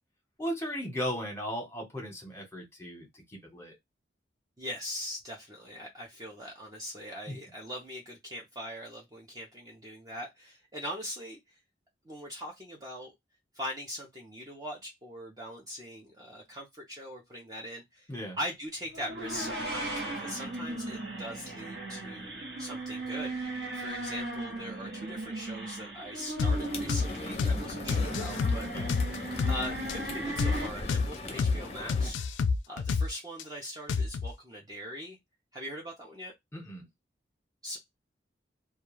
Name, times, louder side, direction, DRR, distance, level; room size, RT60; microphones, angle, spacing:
voice 1, 0.4-3.8 7.3-7.4 18.1-18.4 28.7-29.0 36.5-36.8, equal, 15° left, 0.9 m, -36 dB
voice 2, 4.6-11.4 12.0-13.1 13.5-18.1 18.4-28.7 29.5-32.3 32.7-35.2 35.5-36.3 37.6-37.8, equal, 20° right, 0.5 m, -41 dB
sound 1, 18.9-30.7, right 2 dB, 65° right, 0.8 m, -37 dB
sound 2, 26.4-26.6 26.9-27.1 27.4-27.6 27.9-29.6 29.9-30.0 30.4-30.6 30.9-31.1 31.4-31.6 31.9-33.4 33.9-34.3, left 4 dB, 85° left, 0.4 m, -28 dB
sound 3, 26.4-32.1, left 3 dB, 35° left, 0.5 m, -40 dB
2.3 x 2.2 x 3.0 m
head